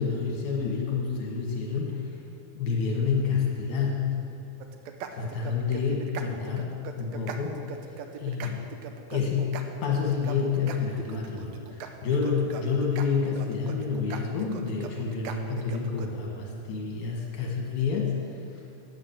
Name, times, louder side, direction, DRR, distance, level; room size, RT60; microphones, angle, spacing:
voice 1, 0.0-2.0 2.5-4.1 5.1-7.6 8.2-8.7 9.1-18.2, left 5 dB, 70° left, -1 dB, 3.1 m, -28 dB
sound 1, 4.6-16.1, right 7 dB, 70° right, 1.9 m, -40 dB
11.0 x 9.5 x 7.5 m, 2.5 s
omnidirectional pair, 3.8 m